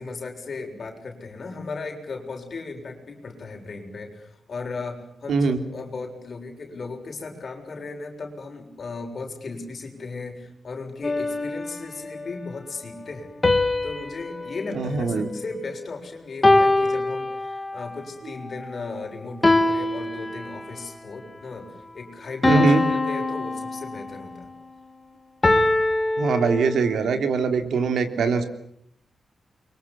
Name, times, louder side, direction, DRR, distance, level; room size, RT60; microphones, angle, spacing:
voice 1, 0.0-13.3 13.8-24.5, left 3 dB, 40° left, 3 dB, 7.1 m, -36 dB
voice 2, 5.3-5.6 14.7-15.3 22.5-22.8 26.2-28.4, right 4 dB, 75° right, 8 dB, 3.5 m, -22 dB
sound 1, 11.0-12.2 13.4-15.9 16.4-17.9 19.4-20.9 22.4-24.3 25.4-27.1, left 2 dB, 15° left, 2.1 m, -23 dB
29.5 x 24.5 x 7.2 m, 0.71 s
wide cardioid pair, 175°, 0 cm